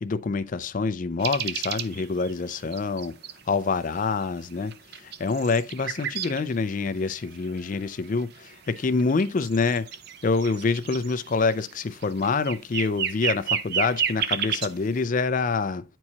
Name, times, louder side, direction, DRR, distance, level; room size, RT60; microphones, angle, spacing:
voice 1, 0.0-3.1 3.5-9.9 10.2-15.8, left 4 dB, 40° left, 0.4 m, -26 dB
sound 1, 1.2-3.4 4.0-4.1 4.5-6.4 6.8-14.7, right 8 dB, 50° right, 0.5 m, -31 dB
9.6 x 4.5 x 2.8 m
head